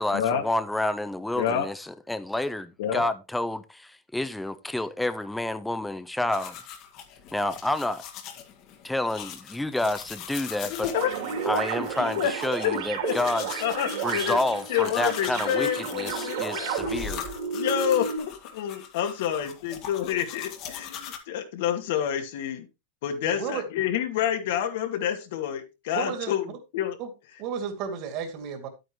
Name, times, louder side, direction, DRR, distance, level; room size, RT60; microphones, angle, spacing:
voice 1, 0.0-6.6 7.3-8.0 8.8-10.9 11.5-13.6 14.0-17.3, left 1 dB, 5° left, 0.5 m, -29 dB
voice 2, 1.4-1.7 2.8-3.0 10.6-11.1 12.2-12.3 12.6-13.1 13.6-14.4 14.7-16.9 17.5-22.7 23.0-26.4 26.7-27.0, left 9 dB, 60° left, 2.3 m, -28 dB
sound 1, 6.3-21.2, left 8 dB, 35° left, 1.8 m, -41 dB
sound 2, 10.9-18.2, right 5 dB, 60° right, 3.1 m, -32 dB
voice 3, 23.2-23.6 25.9-26.3 27.0-27.1 27.4-28.7, right 7 dB, 40° right, 2.5 m, -32 dB
10.5 x 9.1 x 3.1 m
supercardioid pair, 160°, 0 cm